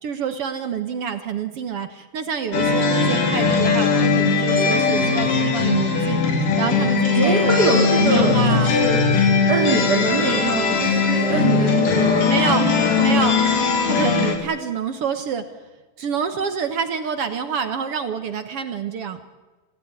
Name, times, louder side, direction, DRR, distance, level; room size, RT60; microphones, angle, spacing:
voice 1, 0.0-6.2 6.6-8.8 12.3-12.7 13.0-13.4 13.9-15.5 16.0-19.2, right 7 dB, 55° right, 9 dB, 1.8 m, -27 dB
sound 1, 2.5-14.4, left 5 dB, 80° left, 4.5 m, -19 dB
voice 2, 7.1-13.4, right 3 dB, 30° right, -1 dB, 3.5 m, -23 dB
26.5 x 16.5 x 9.7 m, 1.2 s
omnidirectional pair, 3.7 m